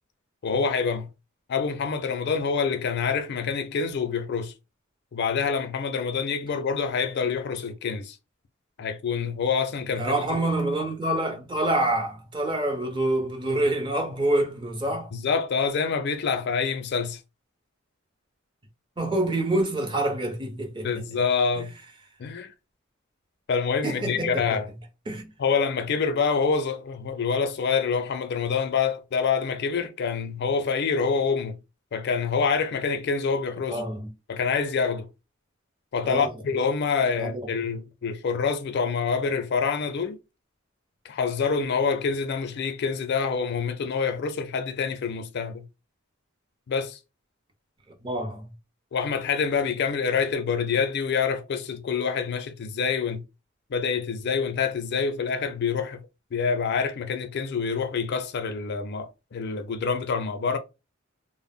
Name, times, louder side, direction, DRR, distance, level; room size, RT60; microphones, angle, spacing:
voice 1, 0.4-1.1 1.5-4.5 5.1-8.2 8.8-10.4 15.1-17.2 20.8-21.7 22.2-22.5 23.5-24.7 25.4-31.6 31.9-33.8 34.3-35.1 35.9-40.2 41.0-45.7 46.7-47.0 48.9-53.2 53.7-60.6, left 5 dB, 55° left, 0.4 m, -26 dB
voice 2, 10.0-15.1 19.0-20.9 23.8-24.6 25.1-25.3 33.7-34.1 36.0-36.3 37.2-37.3 48.0-48.5, right 1 dB, 25° right, 0.6 m, -26 dB
2.1 x 2.0 x 3.4 m
head